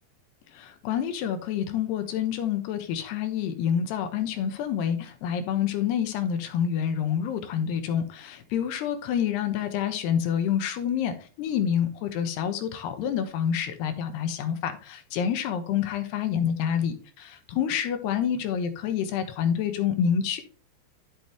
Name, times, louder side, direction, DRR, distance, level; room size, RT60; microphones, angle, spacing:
voice 1, 0.5-20.4, left 8 dB, 75° left, 7 dB, 3.0 m, -28 dB
12.5 x 6.0 x 3.3 m, 0.38 s
omnidirectional pair, 5.0 m